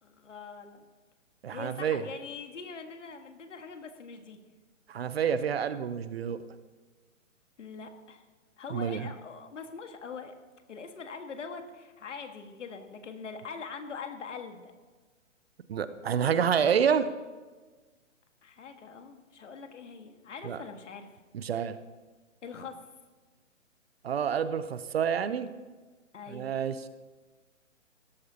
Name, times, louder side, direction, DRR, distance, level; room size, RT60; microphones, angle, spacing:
voice 1, 0.0-0.8 1.5-4.4 7.6-8.2 8.6-10.3 10.7-14.7 18.4-21.1 22.4-22.8 26.1-26.5, left 5 dB, 65° left, 6 dB, 1.7 m, -43 dB
voice 2, 1.4-2.0 4.9-6.4 8.7-9.0 15.7-17.1 20.4-20.6 21.3-21.8 24.0-25.5 26.3-26.8, right 7 dB, 50° right, 13 dB, 0.8 m, -28 dB
17.0 x 14.0 x 2.9 m, 1.3 s
figure-of-eight pair, 140°, 39 cm